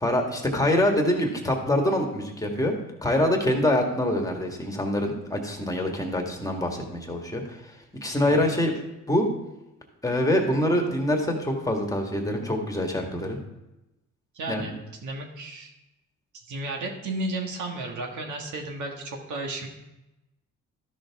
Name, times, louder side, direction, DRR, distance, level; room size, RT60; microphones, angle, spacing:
voice 1, 0.0-2.7 3.0-7.6 8.0-8.7 9.1-9.3 10.0-13.4 14.5-14.8, left 1 dB, 10° left, 1 dB, 1.7 m, -25 dB
voice 2, 14.3-14.7 15.0-15.7 16.5-19.7, right 2 dB, 75° right, 2 dB, 1.6 m, -33 dB
12.5 x 6.5 x 3.6 m, 0.95 s
cardioid pair, 90°, 30 cm